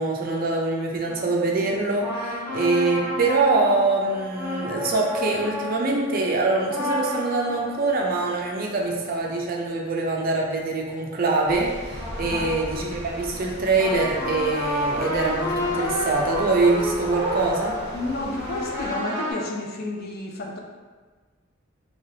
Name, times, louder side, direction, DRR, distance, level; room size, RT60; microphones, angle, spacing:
voice 1, 0.0-17.8, right 3 dB, 45° right, -1 dB, 0.5 m, -24 dB
sound 1, 1.1-9.7 11.7-19.3, left 1 dB, 10° right, 0.9 m, -31 dB
sound 2, 11.5-18.9, equal, 70° left, 1.4 m, -39 dB
voice 2, 17.9-20.6, left 2 dB, 50° left, 1 dB, 0.4 m, -31 dB
3.2 x 2.9 x 2.7 m, 1.4 s
head